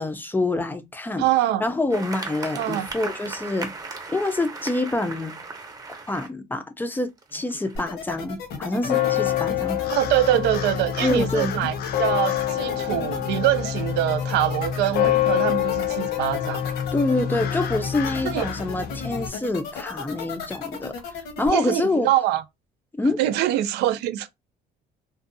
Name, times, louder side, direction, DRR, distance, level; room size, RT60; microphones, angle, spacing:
voice 1, 0.0-1.3 1.6-3.7 4.1-5.4 6.1-9.8 11.0-11.5 16.9-20.9 21.4-22.1 22.9-23.2, left 2 dB, 10° left, 0.4 m, -26 dB
voice 2, 1.2-1.6 2.6-2.9 9.9-16.6 18.2-18.5 21.5-22.4 23.2-24.3, right 13 dB, 85° right, 0.4 m, -24 dB
sound 1, 1.9-6.3 7.0-7.8, right 4 dB, 20° right, 0.8 m, -37 dB
sound 2, 7.8-21.5, left 6 dB, 85° left, 1.0 m, -35 dB
sound 3, 8.8-19.3, left 11 dB, 65° left, 0.6 m, -26 dB
2.6 x 2.2 x 2.6 m
cardioid pair, 110°, 17 cm